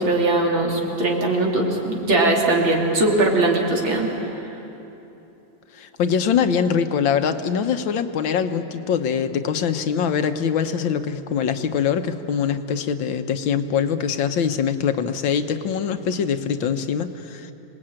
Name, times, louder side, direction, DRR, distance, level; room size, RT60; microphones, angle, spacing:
voice 1, 0.0-4.1, right 2 dB, 90° right, -1 dB, 3.7 m, -20 dB
voice 2, 5.7-17.5, left 7 dB, 80° left, 8 dB, 1.8 m, -23 dB
26.5 x 19.5 x 8.9 m, 3.0 s
omnidirectional pair, 2.1 m